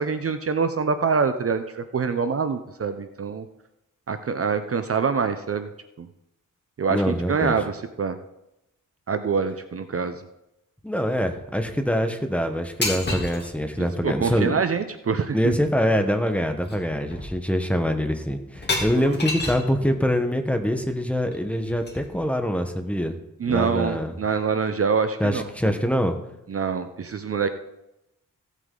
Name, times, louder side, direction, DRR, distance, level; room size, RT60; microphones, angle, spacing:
voice 1, 0.0-3.5 4.1-5.7 6.0-6.1 6.8-8.2 9.1-10.2 13.8-15.4 19.0-19.2 23.4-25.7 26.5-27.5, right 5 dB, 45° right, 10 dB, 0.6 m, -25 dB
voice 2, 6.9-7.5 10.8-14.6 15.3-23.2 23.5-24.1 25.2-26.2, equal, 5° left, 6 dB, 1.0 m, -24 dB
sound 1, 12.8-13.5 15.5-15.6 15.9-16.2 16.6-16.8 17.1-17.7 18.5-19.7 21.3-22.3, left 2 dB, 30° left, 2.5 m, -30 dB
15.5 x 8.2 x 3.8 m, 0.90 s
wide cardioid pair, 130°, 32 cm